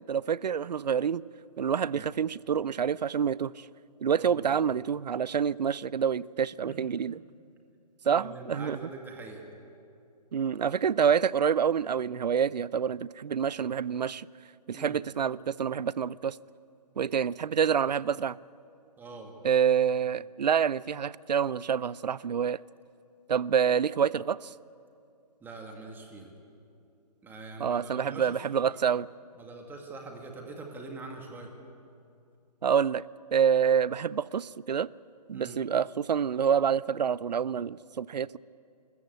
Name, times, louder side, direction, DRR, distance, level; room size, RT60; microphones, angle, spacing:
voice 1, 0.1-1.2 1.6-3.5 4.0-7.2 8.1-8.8 10.3-14.3 14.7-16.4 17.0-18.4 19.4-22.6 23.3-24.5 27.6-29.1 32.6-33.0 33.3-34.9 35.3-38.4, right 7 dB, 85° right, 21 dB, 0.5 m, -27 dB
voice 2, 4.2-4.6 6.6-6.9 8.0-9.5 14.7-15.0 19.0-19.3 25.4-26.3 27.2-28.4 28.7-28.8 29.4-31.5 35.3-35.6, right 3 dB, 10° right, 2 dB, 2.1 m, -43 dB
25.5 x 14.5 x 8.0 m, 2.5 s
hypercardioid pair, 140°, 21 cm